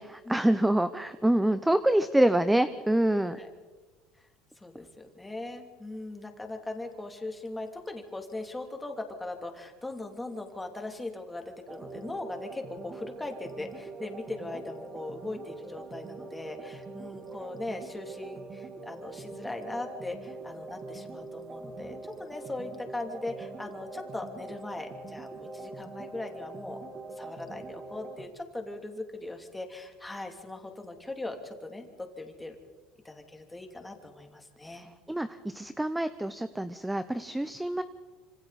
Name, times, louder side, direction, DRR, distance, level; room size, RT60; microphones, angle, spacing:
voice 1, 0.0-3.4 34.6-37.8, right 1 dB, 5° right, 12 dB, 0.7 m, -26 dB
voice 2, 4.6-26.8 27.2-32.6 33.0-34.9, left 2 dB, 10° left, 3 dB, 3.0 m, -39 dB
sound 1, 11.7-28.3, right 3 dB, 30° right, 2.7 m, -43 dB
26.0 x 26.0 x 4.2 m, 1.3 s
supercardioid pair, 115°, 0 cm